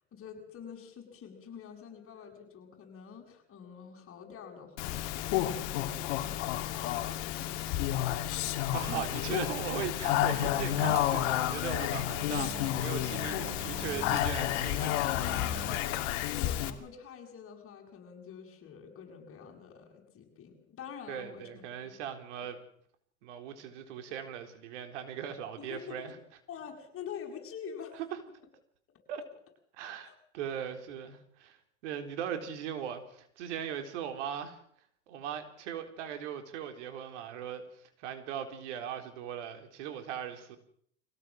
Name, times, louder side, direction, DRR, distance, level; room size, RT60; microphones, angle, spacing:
voice 1, 0.1-9.4 15.5-16.0 16.3-21.9 25.6-26.2 26.5-28.0 29.1-29.2 30.0-30.2, left 7 dB, 35° left, 3 dB, 7.8 m, -47 dB
Speech, 4.8-16.7, left 13 dB, 65° left, 2.8 m, -31 dB
voice 2, 8.7-15.5 21.1-22.6 23.2-26.1 29.1-29.2 29.8-34.6 35.1-37.6 38.0-40.6, right 9 dB, 70° right, 7 dB, 4.0 m, -39 dB
sound 1, 10.0-15.8, right 4 dB, 15° right, 3.3 m, -46 dB
24.5 x 17.5 x 7.6 m, 0.65 s
hypercardioid pair, 100°, 37 cm